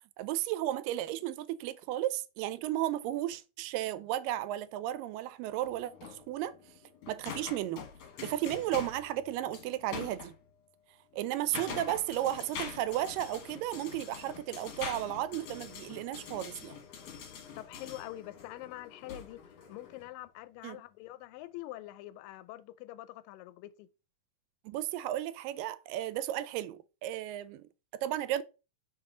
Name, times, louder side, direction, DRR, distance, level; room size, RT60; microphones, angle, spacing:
voice 1, 0.2-6.5 7.1-7.9 8.2-10.3 11.1-16.7 20.6-20.8 24.7-28.4, right 13 dB, 85° right, 2.2 m, -34 dB
sound 1, 5.6-10.4 11.1-20.1, left 6 dB, 60° left, 1.4 m, -45 dB
voice 2, 17.6-19.4 19.7-23.9, left 16 dB, 90° left, 2.3 m, -45 dB
5.9 x 4.7 x 3.7 m
omnidirectional pair, 3.9 m